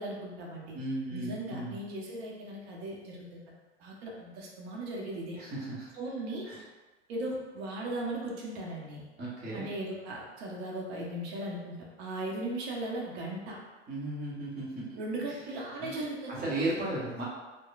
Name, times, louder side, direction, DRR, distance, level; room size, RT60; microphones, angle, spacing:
voice 1, 0.0-0.8 1.1-3.4 3.8-5.4 6.0-6.5 7.1-9.0 9.5-13.6 14.9-16.3, right 1 dB, 55° right, -2 dB, 0.8 m, -37 dB
voice 2, 0.7-1.8 5.4-5.9 6.4-6.6 9.2-9.6 13.9-15.0 15.3-15.4 15.8-16.0 16.3-17.2, right 2 dB, 25° right, -6 dB, 0.9 m, -35 dB
2.9 x 2.1 x 2.3 m, 1.2 s
hypercardioid pair, 95°, 37 cm